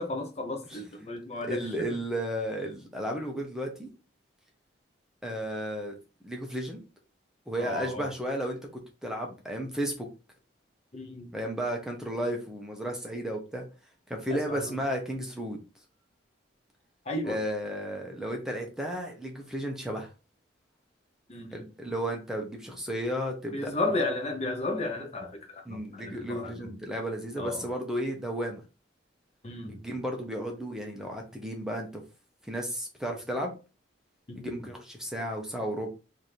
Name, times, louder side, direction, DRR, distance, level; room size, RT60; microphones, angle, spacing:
voice 1, 0.0-2.0 7.6-8.1 10.9-11.3 14.3-14.8 17.1-17.4 21.3-21.6 23.5-26.5 27.4-27.7 29.4-29.8 34.3-34.6, left 2 dB, 35° left, 0.6 m, -34 dB
voice 2, 1.4-3.9 5.2-5.9 6.2-6.8 7.5-10.1 11.3-13.6 14.1-15.6 17.3-20.1 21.5-23.7 25.7-28.6 29.7-32.0 32.5-33.5 34.3-35.9, equal, 5° right, 0.7 m, -33 dB
3.2 x 2.6 x 4.2 m
head